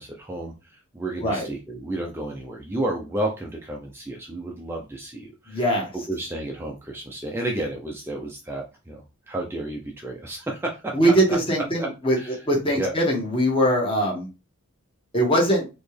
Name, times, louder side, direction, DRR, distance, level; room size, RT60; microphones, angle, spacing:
voice 1, 0.0-5.7 5.9-10.9 11.8-12.5 12.7-12.9, right 1 dB, 10° right, 0 dB, 0.5 m, -32 dB
voice 2, 5.5-5.9 10.9-12.2 12.5-14.3 15.1-15.6, right 1 dB, 25° left, -1 dB, 1.4 m, -21 dB
4.3 x 3.0 x 3.3 m, 0.29 s
head